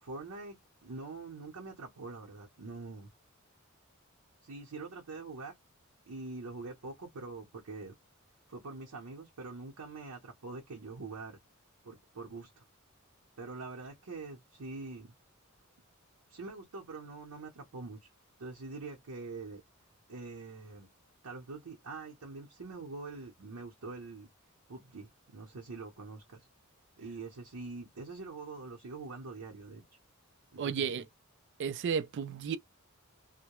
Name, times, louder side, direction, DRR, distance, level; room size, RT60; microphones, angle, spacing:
voice 1, 0.0-3.1 4.4-5.5 6.1-7.9 8.5-11.4 11.8-12.7 13.4-15.1 16.3-18.1 18.4-19.6 20.1-20.9 21.2-24.3 24.7-26.5 27.0-29.8 30.5-31.0, right 3 dB, 85° right, 0.7 m, -44 dB
voice 2, 30.6-31.1 31.6-32.6, right 6 dB, 55° right, 0.3 m, -33 dB
2.2 x 2.0 x 2.9 m
head